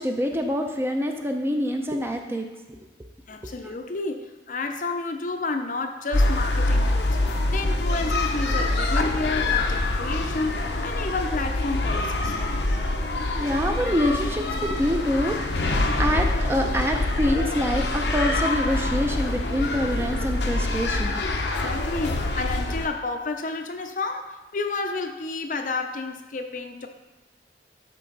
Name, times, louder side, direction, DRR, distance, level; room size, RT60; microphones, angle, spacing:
voice 1, 0.0-2.4 13.3-21.2, equal, 15° right, 3 dB, 0.6 m, -26 dB
voice 2, 3.3-12.3 21.6-26.9, left 3 dB, 45° left, 5 dB, 0.6 m, -31 dB
sound 1, 6.1-22.9, left 2 dB, 75° left, 0.8 m, -25 dB
12.5 x 4.5 x 4.0 m, 1.2 s
head